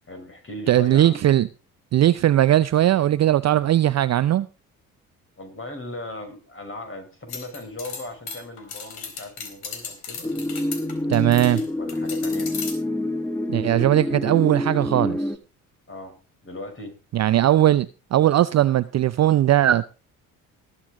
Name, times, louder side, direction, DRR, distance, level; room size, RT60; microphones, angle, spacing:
voice 1, 0.1-1.2 5.4-10.6 11.5-12.5 15.9-16.1 16.4-17.0, left 2 dB, 30° left, 5.9 m, -38 dB
voice 2, 0.7-1.5 1.9-4.5 11.1-11.6 13.5-15.3 17.1-19.9, right 13 dB, 40° right, 0.6 m, -19 dB
sound 1, 7.3-11.6 11.9-12.7, left 6 dB, 60° left, 3.9 m, -36 dB
sound 2, 10.2-15.4, left 1 dB, 5° left, 1.5 m, -27 dB
20.0 x 8.3 x 3.8 m
hypercardioid pair, 55°, 43 cm